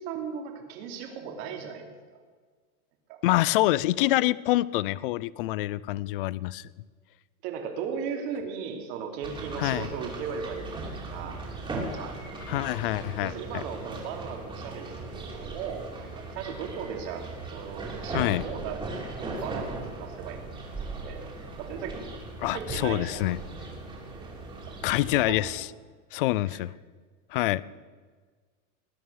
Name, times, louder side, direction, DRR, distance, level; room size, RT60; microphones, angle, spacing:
voice 1, 0.0-2.2 3.1-3.2 7.4-10.7 11.1-11.4 11.9-12.1 13.2-15.8 16.1-18.8 19.1-20.4 21.0-21.2 21.5-22.0 22.5-23.3 25.1-25.4 26.5-26.6, right 6 dB, 45° right, 4 dB, 3.0 m, -37 dB
voice 2, 3.2-6.7 9.6-9.9 12.5-13.6 18.1-18.4 22.4-23.4 24.8-25.7 26.1-26.7 27.3-27.6, left 17 dB, 40° left, 21 dB, 0.4 m, -26 dB
sound 1, 9.2-25.5, right 2 dB, 10° right, 3.0 m, -38 dB
20.0 x 9.5 x 6.3 m, 1.5 s
supercardioid pair, 160°, 43 cm